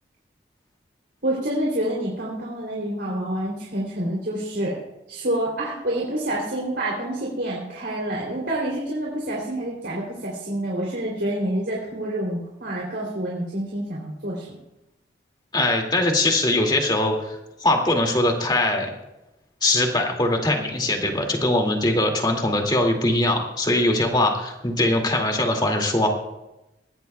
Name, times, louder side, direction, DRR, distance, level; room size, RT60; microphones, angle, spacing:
voice 1, 1.2-4.8 5.1-14.6, right 1 dB, 65° right, -4 dB, 3.1 m, -27 dB
voice 2, 15.5-17.1 17.6-18.9 19.6-26.1, left 1 dB, 25° left, 2 dB, 2.3 m, -21 dB
21.0 x 17.0 x 2.3 m, 0.93 s
head